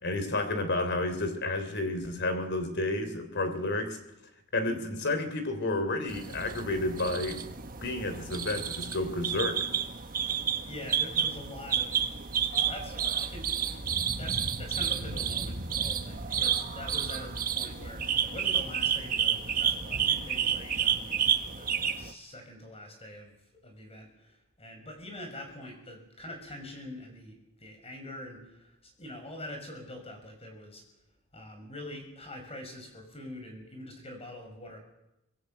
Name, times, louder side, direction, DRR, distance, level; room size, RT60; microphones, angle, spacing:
voice 1, 0.0-4.0 4.5-7.4 7.8-9.6, left 2 dB, 55° left, 9 dB, 3.4 m, -31 dB
sound 1, 6.1-22.1, right 7 dB, 40° right, 1.5 m, -30 dB
voice 2, 10.6-13.5 14.1-21.7 22.0-30.8 31.3-34.8, left 1 dB, 30° left, 4 dB, 6.3 m, -44 dB
25.0 x 20.5 x 7.9 m, 0.90 s
head